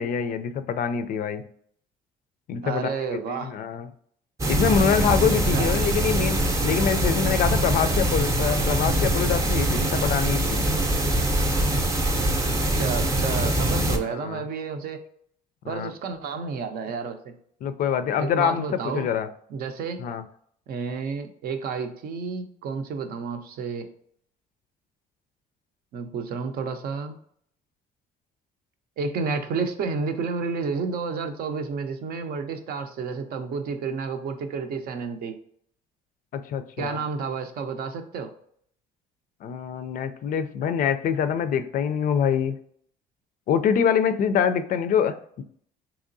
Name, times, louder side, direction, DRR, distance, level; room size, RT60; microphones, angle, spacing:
voice 1, 0.0-1.4 2.5-3.9 4.5-10.6 14.0-14.5 15.6-15.9 17.6-19.3 20.0-20.2 36.3-37.0 39.4-42.6 43.5-45.4, left 7 dB, 55° left, 11 dB, 0.4 m, -25 dB
voice 2, 2.6-3.5 5.5-5.7 12.7-15.0 15.7-17.3 18.2-19.1 19.5-20.0 20.7-23.9 25.9-27.2 29.0-35.4 36.8-38.3, right 5 dB, 65° right, 7 dB, 0.5 m, -30 dB
sound 1, 4.4-14.0, right 1 dB, 20° right, 0.6 m, -23 dB
3.6 x 2.9 x 2.6 m, 0.64 s
cardioid pair, 110°, 17 cm